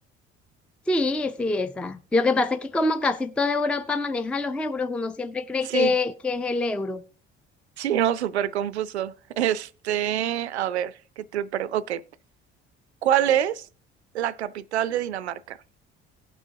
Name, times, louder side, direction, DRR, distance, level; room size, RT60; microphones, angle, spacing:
voice 1, 0.9-7.0, left 3 dB, 5° left, 0.4 m, -25 dB
voice 2, 7.8-12.0 13.0-13.7 14.1-15.6, right 10 dB, 80° right, 0.5 m, -26 dB
18.0 x 6.1 x 2.7 m
figure-of-eight pair, 50°, 33 cm